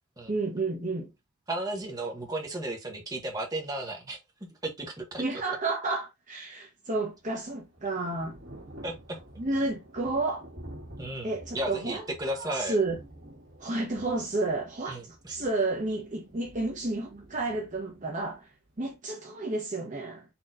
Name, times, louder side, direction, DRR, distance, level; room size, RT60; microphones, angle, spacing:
voice 1, 0.3-1.1 5.2-8.4 9.4-10.5 11.2-12.0 12.4-13.0 13.6-18.5 18.8-20.2, right 2 dB, 35° right, 0.9 m, -31 dB
voice 2, 1.5-4.2 4.6-5.2 8.8-9.2 11.0-12.8 14.9-15.4, right 1 dB, 15° right, 1.1 m, -34 dB
Thunder / Rain, 7.0-18.9, right 1 dB, 50° right, 2.1 m, -50 dB
4.3 x 2.9 x 3.8 m
head